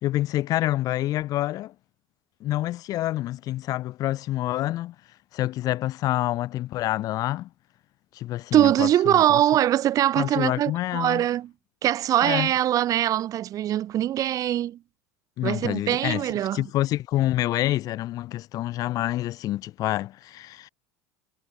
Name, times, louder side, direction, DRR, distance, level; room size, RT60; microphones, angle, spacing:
voice 1, 0.0-1.7 2.4-4.9 5.3-7.5 8.1-9.4 10.2-11.3 12.2-12.5 15.4-20.7, left 15 dB, 50° left, 0.9 m, -27 dB
voice 2, 8.5-11.5 11.8-14.8 15.4-16.6, right 12 dB, 45° right, 3.2 m, -22 dB
hypercardioid pair, 85°, 8 cm